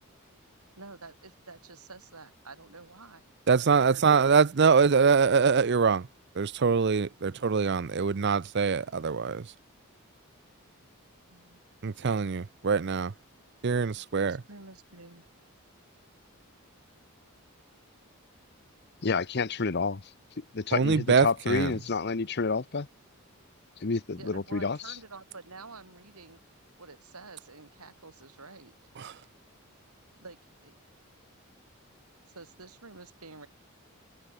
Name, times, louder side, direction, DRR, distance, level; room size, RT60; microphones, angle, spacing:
voice 1, 0.8-3.2 3.7-4.0 11.3-11.6 14.2-15.2 24.1-26.4 26.8-28.7 30.2-30.7 32.3-33.5, right 3 dB, 90° right, 5.0 m, -49 dB
voice 2, 3.5-6.1 6.4-9.5 11.8-13.1 13.6-14.4 20.7-21.7 29.0-29.1, right 5 dB, 50° right, 0.5 m, -24 dB
voice 3, 19.0-20.0 20.4-22.9 23.8-25.0, left 4 dB, 50° left, 0.8 m, -29 dB
head